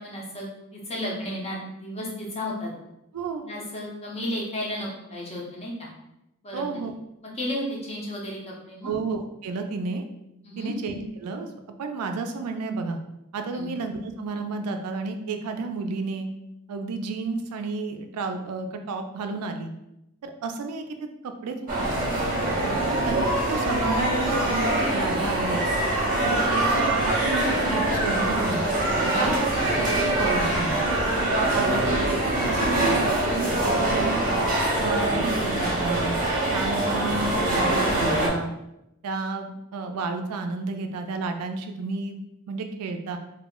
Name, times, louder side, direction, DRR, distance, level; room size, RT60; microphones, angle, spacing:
voice 1, 0.0-2.9 3.4-5.9 6.4-6.7 7.2-8.9 10.4-10.7 13.5-13.7 22.6-23.0 29.0-29.3 31.5-31.7, equal, 30° left, -3 dB, 0.6 m, -33 dB
voice 2, 3.1-3.4 6.5-6.9 8.8-10.1 10.6-11.5 11.8-13.0 13.3-16.3 16.7-19.7 20.2-20.8 21.2-22.1 22.9-23.2 23.5-25.7 26.2-28.7 29.1-29.5 29.8-30.9 31.5-34.3 34.8-36.2 36.5-38.5 39.0-42.2 42.5-43.2, right 3 dB, 90° right, 6 dB, 0.3 m, -31 dB
sound 1, 21.7-38.3, right 1 dB, 40° right, 0.7 m, -24 dB
2.3 x 2.0 x 3.6 m, 0.86 s
head